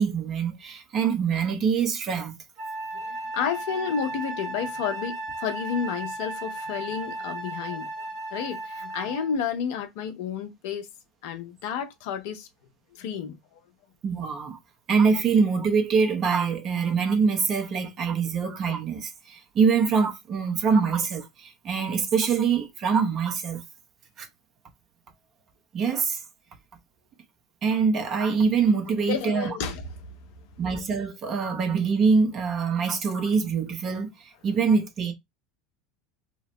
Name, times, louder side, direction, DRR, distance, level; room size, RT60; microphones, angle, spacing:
voice 1, 0.0-2.4 14.0-14.6 14.9-23.6 24.2-24.3 25.7-26.2 27.6-29.5 30.6-35.1, right 5 dB, 40° right, 0.7 m, -24 dB
Wind instrument woodwind instrument, 2.6-9.4, right 2 dB, 55° right, 1.1 m, -35 dB
voice 2, 2.9-7.9 8.3-10.9 11.2-12.5 12.9-13.4 29.1-29.8, left 7 dB, 65° left, 0.6 m, -31 dB
2.8 x 2.0 x 2.7 m
hypercardioid pair, 80°, 0 cm